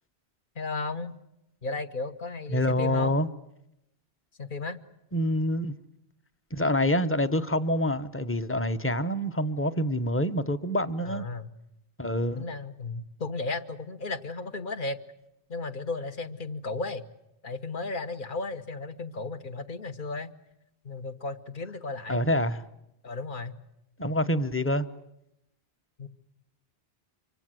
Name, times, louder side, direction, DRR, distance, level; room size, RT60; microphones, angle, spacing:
voice 1, 0.5-1.2 1.6-3.2 4.4-4.8 11.0-11.5 12.4-15.0 15.5-17.0 17.4-20.3 20.8-22.2 23.0-23.5 26.0-26.1, left 3 dB, 45° left, 1.4 m, -34 dB
voice 2, 2.5-3.3 5.1-5.8 6.5-11.2 12.0-12.5 22.1-22.6 24.0-24.9, left 1 dB, 10° left, 0.9 m, -26 dB
26.0 x 23.5 x 7.7 m
omnidirectional pair, 1.2 m